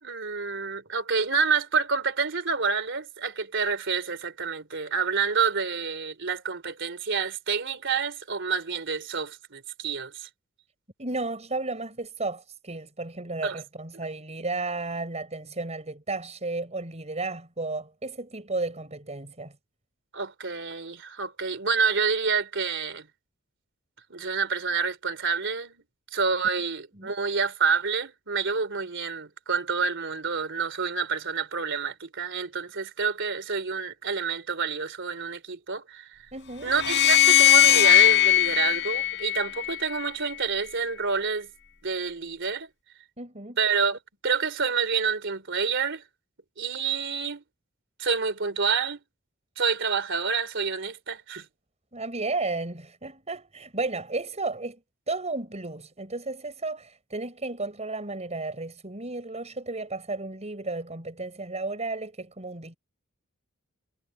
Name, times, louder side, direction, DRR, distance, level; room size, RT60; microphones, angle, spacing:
voice 1, 0.0-10.3 13.4-13.6 20.1-23.1 24.1-25.8 26.1-36.2 36.6-41.5 41.8-42.7 43.6-46.0 46.6-47.4 48.0-49.0 49.6-51.4, right 5 dB, 60° right, 3.4 m, -28 dB
voice 2, 11.0-19.5 27.0-27.1 36.3-36.7 43.2-43.6 51.9-54.8 55.1-62.8, right 3 dB, 35° right, 6.3 m, -33 dB
sound 1, 36.7-40.0, left 12 dB, 60° left, 3.9 m, -19 dB
head